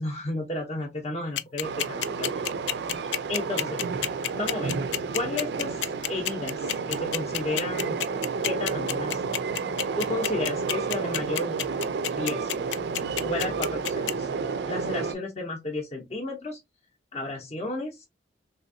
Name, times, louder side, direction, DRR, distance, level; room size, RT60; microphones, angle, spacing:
voice 1, 0.0-2.4 3.3-3.8 4.3-4.8 5.1-8.0 8.5-9.2 10.0-11.6 12.1-12.5 13.2-14.3 14.7-16.6 17.1-18.1, left 2 dB, 35° left, 0.6 m, -32 dB
sound 1, 1.4-14.1, left 12 dB, 85° left, 0.3 m, -28 dB
Train, 1.6-15.1, right 5 dB, 65° right, 0.4 m, -31 dB
3.3 x 2.7 x 2.6 m
head